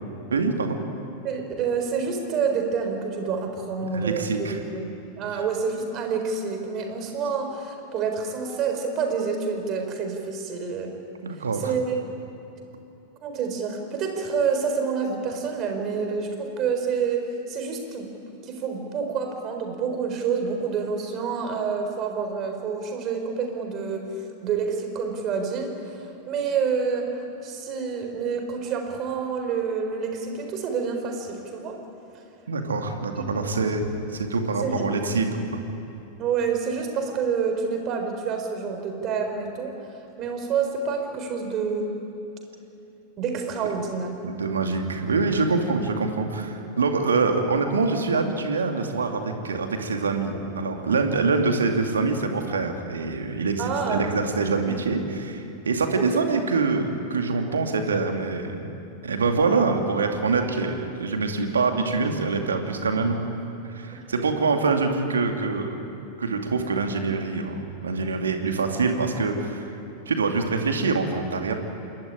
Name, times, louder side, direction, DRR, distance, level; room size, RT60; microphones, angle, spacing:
voice 1, 0.3-0.8 3.8-4.6 5.3-5.4 11.2-11.7 32.5-33.8 34.1-35.6 44.2-58.6 59.0-63.3 63.6-65.8 66.2-69.8 70.1-71.5, right 4 dB, 70° right, 4 dB, 2.4 m, -25 dB
voice 2, 1.2-4.9 5.2-10.9 11.6-12.0 13.2-18.1 18.4-26.0 26.3-27.1 27.4-31.8 33.4-33.5 34.6-34.9 36.2-39.7 40.2-42.0 43.2-44.1 53.6-54.0 56.0-56.2 63.9-64.3, right 5 dB, 35° right, 4 dB, 4.3 m, -28 dB
28.0 x 13.5 x 10.0 m, 2.8 s
figure-of-eight pair, 90°, 0 cm